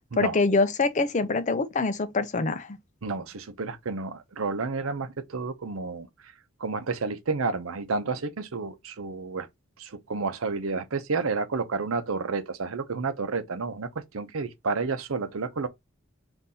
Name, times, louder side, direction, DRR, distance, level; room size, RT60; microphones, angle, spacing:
voice 1, 0.2-2.8, left 3 dB, 35° left, 0.5 m, -25 dB
voice 2, 3.0-6.3 6.6-9.5 9.8-15.7, right 4 dB, 85° right, 0.7 m, -30 dB
3.8 x 2.6 x 4.0 m
head